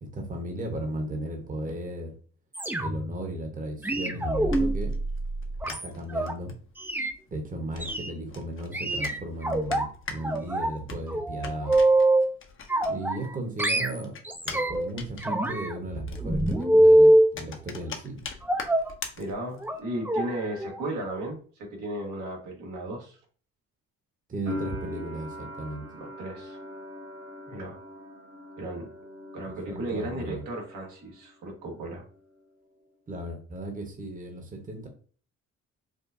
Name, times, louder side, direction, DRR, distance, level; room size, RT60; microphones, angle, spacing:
voice 1, 0.0-2.1 2.8-4.9 5.7-6.5 7.3-11.8 12.9-14.1 14.4-18.2 24.3-25.9 29.4-30.4 33.1-34.9, right 1 dB, 25° right, 3 dB, 1.0 m, -35 dB
sound 1, 2.5-3.2 3.8-6.3 6.8-7.1 7.8-8.1 8.7-9.9 10.2-10.8 11.1-12.3 12.7-13.3 13.6-14.9 15.2-17.3 18.5-18.9 19.6-19.8 20.1-20.3 20.6-20.8 21.1-21.2, right 1 dB, 5° right, 0.5 m, -24 dB
sound 2, 4.1-13.3 13.5-19.8, left 5 dB, 45° left, 0.8 m, -43 dB
voice 2, 19.2-23.2 25.9-26.6 27.5-27.8 28.6-28.9 29.3-32.0, right 1 dB, 85° right, 0 dB, 1.5 m, -35 dB
sound 3, 24.5-31.3 31.5-32.4, equal, 50° right, 1.0 m, -41 dB
5.0 x 2.2 x 2.6 m, 0.42 s
cardioid pair, 90°, 30 cm